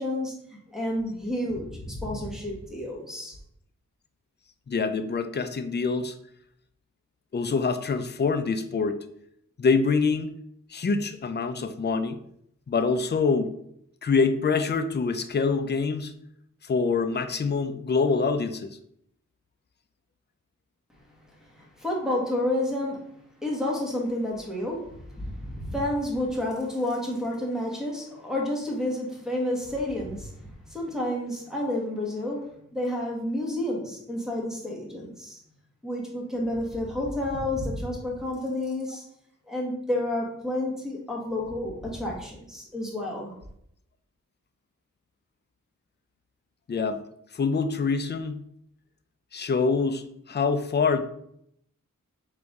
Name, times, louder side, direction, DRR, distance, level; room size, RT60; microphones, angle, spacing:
voice 1, 0.0-3.3 21.4-23.0 23.4-35.4 35.8-39.0 39.5-43.3, left 1 dB, ahead, -2 dB, 1.6 m, -30 dB
voice 2, 4.7-6.1 7.3-9.0 9.6-10.3 10.7-12.2 12.7-13.5 14.0-16.1 16.6-18.8 46.7-47.0 47.3-48.4 49.3-51.0, left 4 dB, 35° left, 9 dB, 0.5 m, -25 dB
4.0 x 3.3 x 3.6 m, 0.72 s
cardioid pair, 55°, 32 cm